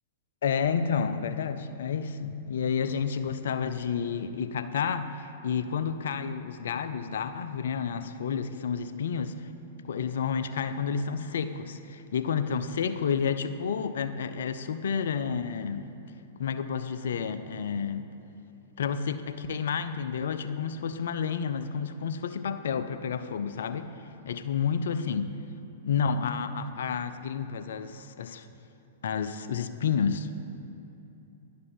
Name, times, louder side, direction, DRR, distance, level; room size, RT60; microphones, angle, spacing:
voice 1, 0.4-9.5 9.8-15.9 16.4-18.1 18.8-24.0 24.3-25.3 25.8-28.5 29.0-30.5, left 6 dB, 65° left, 10 dB, 0.4 m, -30 dB
11.0 x 5.2 x 4.3 m, 2.9 s
figure-of-eight pair, 105°, 0 cm